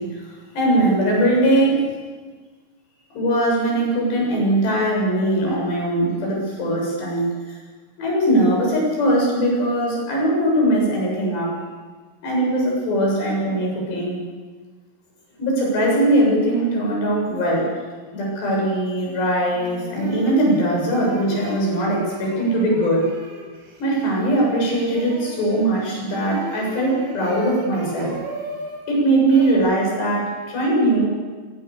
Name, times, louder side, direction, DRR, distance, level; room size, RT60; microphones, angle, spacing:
voice 1, 0.0-1.9 3.1-7.6 8.0-11.6 12.2-14.2 15.4-17.8 18.1-23.0 23.8-28.1 28.9-31.1, right 1 dB, 75° left, -1 dB, 9.6 m, -20 dB
sound 1, 19.0-19.1 19.5-28.8 29.2-29.5, right 1 dB, 90° right, 7.1 m, -36 dB
25.5 x 23.0 x 6.9 m, 1.4 s
omnidirectional pair, 4.9 m